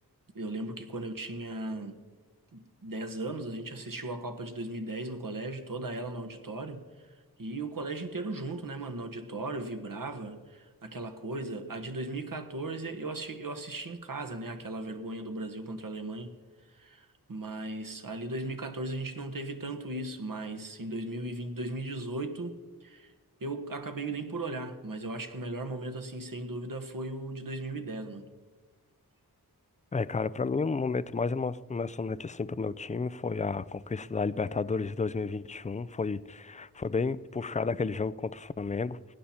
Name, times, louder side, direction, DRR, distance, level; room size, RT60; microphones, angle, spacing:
voice 1, 0.3-2.0 2.5-7.1 7.4-16.3 16.7-23.1 23.4-28.3, right 2 dB, 55° right, 1.3 m, -37 dB
voice 2, 29.9-39.0, left 4 dB, 20° left, 0.4 m, -32 dB
16.5 x 10.0 x 4.3 m
wide cardioid pair, 60°, 39 cm